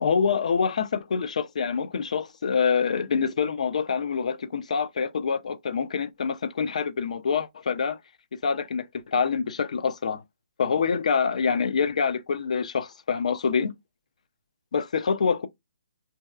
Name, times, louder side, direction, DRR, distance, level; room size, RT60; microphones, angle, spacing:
voice 1, 0.0-8.0 8.4-10.2 10.6-13.7 14.7-15.5, left 6 dB, 65° left, 0.4 m, -26 dB
2.6 x 2.2 x 2.3 m
hypercardioid pair, 160°, 4 cm